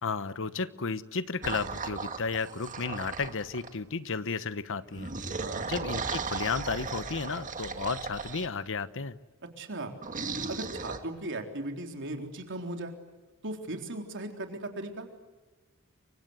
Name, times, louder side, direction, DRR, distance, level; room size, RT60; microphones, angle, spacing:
voice 1, 0.0-5.1 5.7-9.2, left 4 dB, 60° left, 14 dB, 1.1 m, -33 dB
sound 1, 1.4-3.8 4.9-8.5 10.0-11.0, right 4 dB, 35° right, 1.9 m, -36 dB
voice 2, 5.4-5.7 9.6-9.9 10.5-12.9 13.4-15.1, right 2 dB, 60° right, 4 dB, 3.9 m, -37 dB
29.5 x 24.5 x 8.1 m, 1.2 s
head